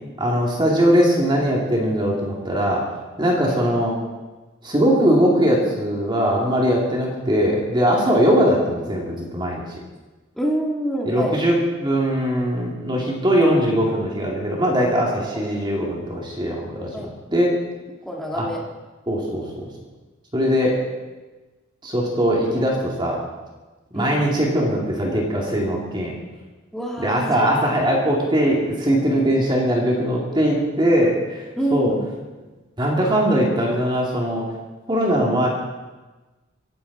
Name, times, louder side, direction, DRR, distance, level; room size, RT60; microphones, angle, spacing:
voice 1, 0.2-2.8 3.2-3.9 4.6-9.8 11.1-17.5 18.3-18.4 19.1-19.7 20.3-20.8 21.8-23.2 23.9-26.1 27.0-31.4 31.7-31.9 32.8-34.4 34.9-35.5, equal, 25° right, -2 dB, 2.7 m, -20 dB
voice 2, 10.4-11.3 15.3-15.4 16.9-17.1 18.0-18.6 23.9-24.2 26.7-27.7 31.6-32.0, right 1 dB, ahead, -2 dB, 1.7 m, -27 dB
24.5 x 11.5 x 4.2 m, 1.2 s
head